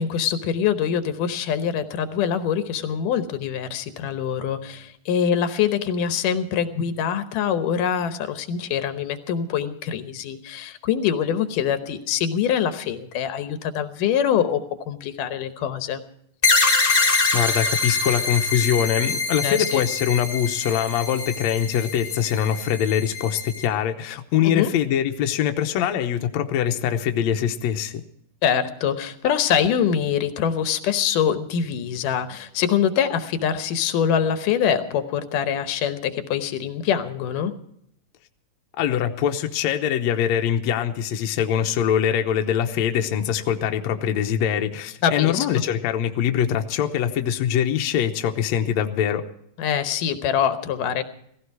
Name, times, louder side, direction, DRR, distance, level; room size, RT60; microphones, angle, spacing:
voice 1, 0.0-16.0 19.4-19.8 24.4-24.7 28.4-37.5 45.0-45.6 49.6-51.0, left 8 dB, 85° left, 10 dB, 2.6 m, -24 dB
sound 1, 16.4-23.7, left 3 dB, 25° left, 1.2 m, -24 dB
voice 2, 17.3-28.0 38.8-49.3, left 9 dB, 65° left, 5 dB, 2.0 m, -23 dB
17.0 x 16.0 x 4.7 m, 0.71 s
omnidirectional pair, 3.7 m